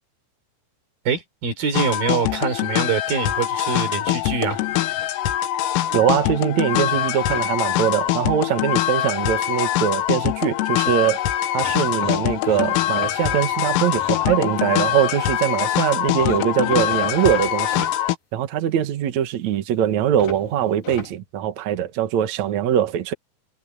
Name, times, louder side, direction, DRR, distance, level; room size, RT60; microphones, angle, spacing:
voice 1, 1.0-4.6, right 6 dB, 50° right, 5.1 m, -24 dB
sound 1, 1.7-18.2, left 13 dB, 85° left, 3.8 m, -23 dB
sound 2, 3.7-5.1 5.6-6.4 6.9-7.5 10.6-10.7 10.8-11.0 11.6-15.1 16.2-17.9 20.2-21.1, left 5 dB, 50° left, 4.7 m, -37 dB
voice 2, 5.9-11.2 11.5-17.8 18.3-23.1, right 10 dB, 85° right, 1.6 m, -22 dB
omnidirectional pair, 5.8 m